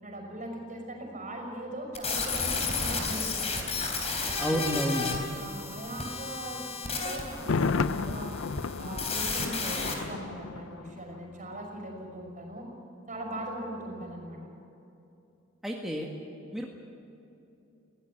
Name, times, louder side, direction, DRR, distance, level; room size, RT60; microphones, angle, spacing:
voice 1, 0.0-3.9 5.4-8.4 8.8-12.7 13.1-14.4, right 1 dB, 40° right, 2 dB, 5.9 m, -40 dB
sound 1, 1.9-9.9, left 4 dB, 35° left, 3.7 m, -33 dB
voice 2, 4.4-5.2 15.6-16.1 16.5-16.7, equal, ahead, -2 dB, 1.7 m, -30 dB
Thunder, 7.3-11.2 11.5-11.6, left 4 dB, 75° left, 0.5 m, -32 dB
22.0 x 17.0 x 9.6 m, 2.8 s
head